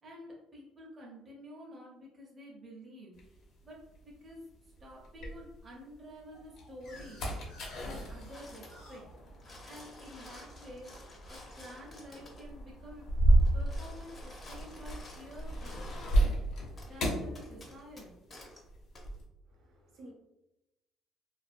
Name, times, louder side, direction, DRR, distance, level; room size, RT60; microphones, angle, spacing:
voice 1, 0.0-3.1 3.6-7.4 7.7-9.1 9.6-10.9 11.3-13.1 13.5-16.4 16.9-18.1, equal, 30° right, -3 dB, 0.7 m, -50 dB
sound 1, 3.2-5.9 6.4-18.2 18.4-19.2, right 1 dB, 60° left, 0.7 m, -33 dB
sound 2, 6.3-11.1, left 2 dB, 80° left, 1.0 m, -58 dB
sound 3, 8.3-8.9 9.2-12.5 13.4-16.2 16.8-16.9 17.3-18.6 19.0-19.1, left 1 dB, 25° left, 0.6 m, -52 dB
voice 2, 19.5-20.1, right 1 dB, 55° right, -1 dB, 0.8 m, -53 dB
2.4 x 2.2 x 2.5 m, 0.95 s
cardioid pair, 135°, 0 cm